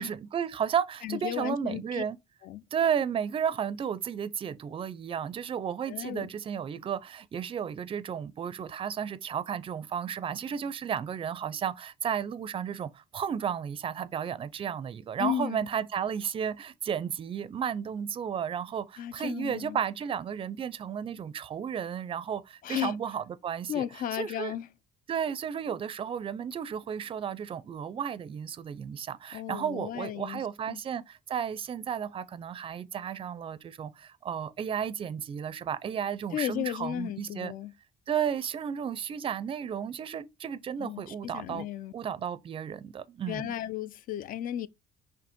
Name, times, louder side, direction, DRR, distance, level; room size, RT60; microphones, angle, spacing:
voice 1, 0.0-2.2 2.7-23.8 24.1-24.5 25.1-37.5 38.1-41.7 41.9-43.5, right 8 dB, 30° right, 0.4 m, -33 dB
voice 2, 1.0-2.0 2.4-2.6 5.9-6.3 15.2-15.6 19.0-19.8 22.6-23.0 23.7-24.7 29.3-30.8 36.3-37.7 40.8-41.9 43.3-44.7, left 11 dB, 55° left, 0.4 m, -34 dB
4.9 x 2.9 x 3.6 m
cardioid pair, 110°, 17 cm